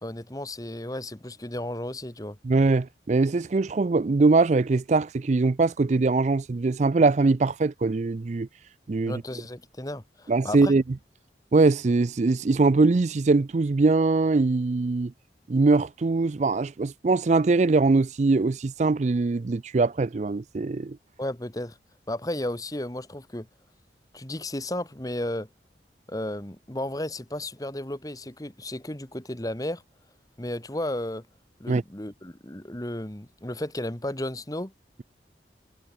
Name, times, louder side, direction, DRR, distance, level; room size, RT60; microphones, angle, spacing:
voice 1, 0.0-2.4 9.1-10.7 21.2-21.8 22.1-23.5 24.1-25.5 26.1-29.8 30.4-31.3 31.6-34.7, left 1 dB, 20° left, 1.6 m, -33 dB
voice 2, 2.4-8.5 8.9-9.2 10.3-10.8 11.5-15.1 15.5-21.0 31.7-31.8, right 3 dB, 40° right, 0.4 m, -22 dB
head